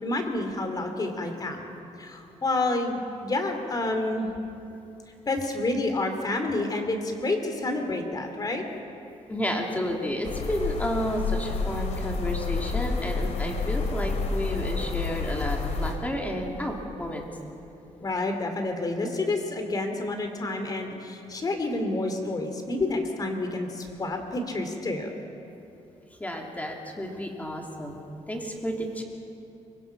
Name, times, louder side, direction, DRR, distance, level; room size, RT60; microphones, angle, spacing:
voice 1, 0.0-1.7 2.0-4.3 5.3-8.6 18.0-25.1, left 2 dB, 30° left, 5 dB, 2.9 m, -29 dB
voice 2, 9.3-17.3 26.2-28.0 28.3-29.0, equal, 10° left, 1 dB, 2.9 m, -31 dB
sound 1, 10.2-15.9, left 4 dB, 70° left, 3.0 m, -29 dB
24.5 x 21.5 x 6.0 m, 2.8 s
cardioid pair, 130°, 12 cm